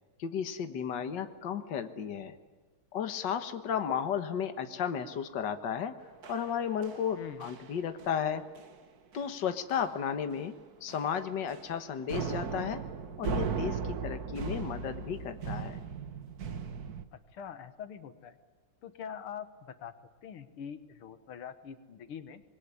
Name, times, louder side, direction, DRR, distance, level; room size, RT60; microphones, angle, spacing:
voice 1, 0.2-2.3 2.9-5.9 6.3-8.4 9.1-10.5 10.8-12.8 13.2-15.8, left 8 dB, 60° left, 9 dB, 2.0 m, -34 dB
sound 1, 6.2-7.1 7.4-7.7 8.0-8.2 8.6-8.8 9.1-9.2 9.7-10.0 10.3-10.5 10.9-11.8 12.1-17.0, right 5 dB, 50° right, 1.7 m, -37 dB
voice 2, 7.1-7.5 17.1-18.4 18.8-19.9 20.2-22.4, left 8 dB, 90° left, 11 dB, 2.2 m, -44 dB
26.5 x 21.5 x 10.0 m, 1.4 s
omnidirectional pair, 2.3 m